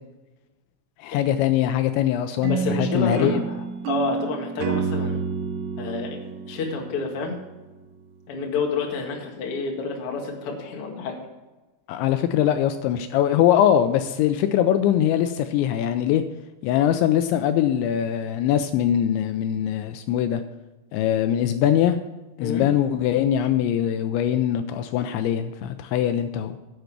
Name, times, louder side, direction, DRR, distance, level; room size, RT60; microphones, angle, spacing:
voice 1, 1.0-3.5 11.9-16.2 16.6-20.4 20.9-22.0 22.4-26.6, left 10 dB, 85° left, 9 dB, 2.7 m, -22 dB
voice 2, 2.4-5.2 5.8-6.2 6.5-7.4 8.3-11.2 22.4-22.7, left 4 dB, 60° left, 1 dB, 1.5 m, -29 dB
sound 1, 2.4-7.6, right 6 dB, 75° right, 2.8 m, -29 dB
10.0 x 8.1 x 6.0 m, 1.1 s
omnidirectional pair, 5.5 m